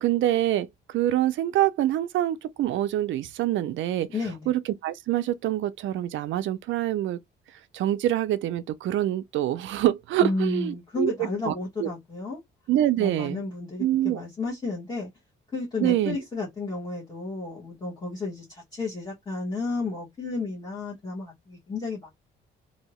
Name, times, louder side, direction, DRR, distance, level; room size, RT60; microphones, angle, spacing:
voice 1, 0.0-4.1 4.5-7.2 7.7-11.5 11.8-11.9 12.7-13.4 13.8-14.2 15.8-16.2, right 13 dB, 70° right, 0.4 m, -25 dB
voice 2, 4.1-4.5 10.2-12.4 13.0-15.1 15.5-22.1, left 3 dB, 20° left, 1.1 m, -32 dB
2.7 x 2.7 x 3.0 m
cardioid pair, 170°, 20 cm